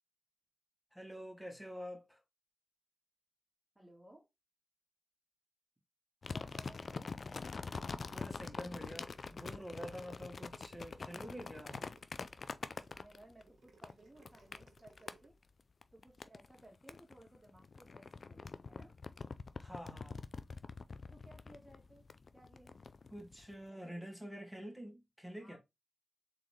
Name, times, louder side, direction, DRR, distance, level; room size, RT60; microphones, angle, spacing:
voice 1, 0.9-2.2 7.9-11.9 19.6-20.3 23.1-25.6, equal, ahead, 2.0 m, -48 dB
voice 2, 3.8-4.3 6.3-7.3 12.9-15.4 15.9-19.0 21.1-22.1 22.3-22.8 23.7-24.1 25.4-25.6, right 1 dB, 20° right, 2.1 m, -60 dB
sound 1, 6.2-13.4 13.8-15.2 15.8-16.6 16.9-23.5, left 4 dB, 60° left, 0.4 m, -45 dB
sound 2, 8.8-15.3, right 4 dB, 75° right, 1.3 m, -66 dB
3.8 x 3.8 x 3.2 m
cardioid pair, 45°, 0 cm